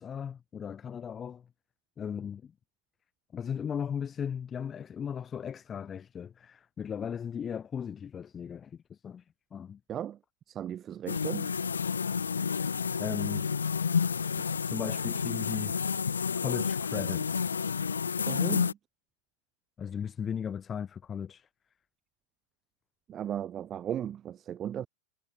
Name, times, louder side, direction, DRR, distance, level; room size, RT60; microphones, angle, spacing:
voice 1, 0.0-1.5 2.0-2.5 3.3-9.2 9.5-9.8 13.0-13.5 14.6-15.7 16.4-17.5 19.8-21.5, left 7 dB, 20° left, 7.4 m, -37 dB
voice 2, 9.9-10.2 10.5-11.6 18.3-18.8 23.1-24.9, right 10 dB, 25° right, 5.5 m, -36 dB
sound 1, 11.1-18.7, left 6 dB, 70° left, 4.2 m, -30 dB
figure-of-eight pair, 90°, 0 cm